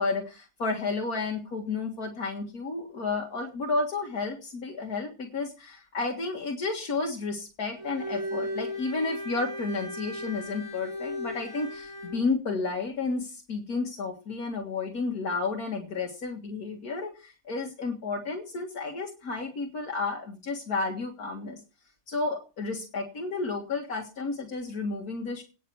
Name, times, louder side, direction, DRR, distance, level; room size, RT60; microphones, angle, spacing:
voice 1, 0.0-21.6 22.1-25.4, left 3 dB, 70° left, 2 dB, 2.1 m, -32 dB
Bowed string instrument, 7.7-12.2, left 1 dB, 15° right, 5.9 m, -36 dB
18.0 x 6.7 x 4.6 m, 0.33 s
omnidirectional pair, 1.7 m